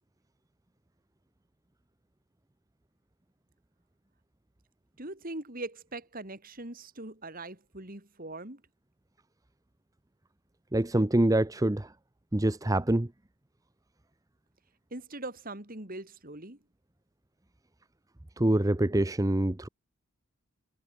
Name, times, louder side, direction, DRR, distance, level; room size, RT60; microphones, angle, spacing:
voice 1, 5.0-8.6 14.9-16.6, right 2 dB, 40° right, 3.3 m, -41 dB
voice 2, 10.7-11.9 12.3-13.1 18.4-19.7, right 1 dB, 15° right, 0.7 m, -25 dB
head